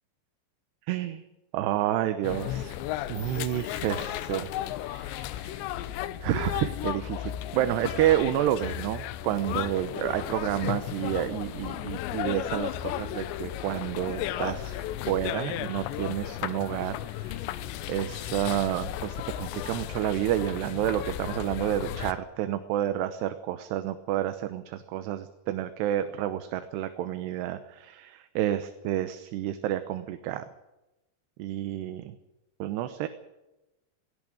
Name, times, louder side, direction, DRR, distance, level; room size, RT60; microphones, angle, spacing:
voice 1, 0.9-1.2 1.5-2.8 3.1-4.5 4.8-5.7 6.2-17.4 17.9-30.4 31.4-32.1 32.6-33.1, right 12 dB, 75° right, 10 dB, 3.0 m, -30 dB
sound 1, 2.2-22.1, left 13 dB, 85° left, 3.1 m, -34 dB
sound 2, 3.1-6.1, right 1 dB, 45° right, 5.6 m, -55 dB
18.5 x 17.5 x 8.8 m, 0.99 s
omnidirectional pair, 5.0 m